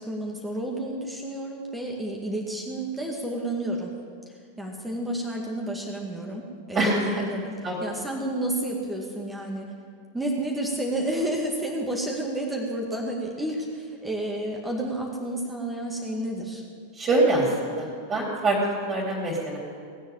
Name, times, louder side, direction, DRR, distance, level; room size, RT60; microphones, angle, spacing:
voice 1, 0.0-3.9 4.6-9.7 10.1-16.6, right 1 dB, 10° right, -1 dB, 2.1 m, -30 dB
voice 2, 6.7-7.2 7.6-7.7 17.0-19.6, right 2 dB, 25° right, -5 dB, 3.9 m, -24 dB
19.0 x 7.9 x 8.8 m, 2.2 s
figure-of-eight pair, 90°, 0 cm